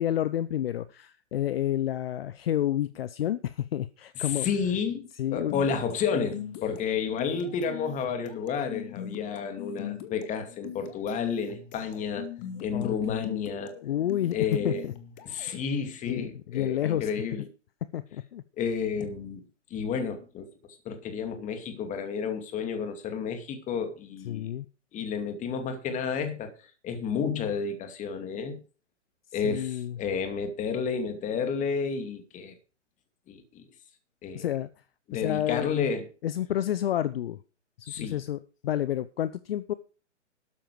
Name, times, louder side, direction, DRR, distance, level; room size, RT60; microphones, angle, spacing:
voice 1, 0.0-4.5 5.1-5.5 12.7-13.3 13.8-14.9 16.1-17.1 17.9-18.4 24.2-24.7 29.3-30.0 34.3-34.7 35.1-35.7 36.2-37.4 38.0-39.7, left 11 dB, 50° left, 0.8 m, -30 dB
voice 2, 4.2-12.3 12.6-13.7 14.3-14.9 15.2-17.4 18.6-19.4 19.7-20.5 20.8-24.5 24.9-28.6 29.3-32.6 33.3-33.7 34.2-34.4 35.1-36.0 37.9-38.2, left 6 dB, 20° left, 2.5 m, -31 dB
sound 1, 5.4-15.6, left 10 dB, 35° left, 2.1 m, -42 dB
13.0 x 10.0 x 5.0 m
hypercardioid pair, 130°, 37 cm